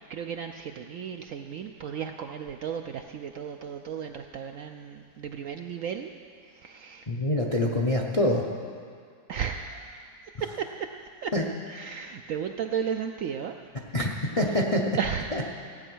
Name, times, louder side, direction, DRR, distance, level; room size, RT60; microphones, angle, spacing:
voice 1, 0.1-6.1 6.5-7.1 9.3-10.1 10.4-10.9 11.2-11.3 11.7-13.5 14.5-14.6 15.0-15.4, right 7 dB, 70° right, 5 dB, 0.8 m, -34 dB
voice 2, 7.1-8.4 11.3-11.4 13.9-14.8 15.3-15.4, left 1 dB, 35° left, 1 dB, 0.5 m, -25 dB
15.5 x 8.8 x 6.2 m, 2.2 s
omnidirectional pair, 1.8 m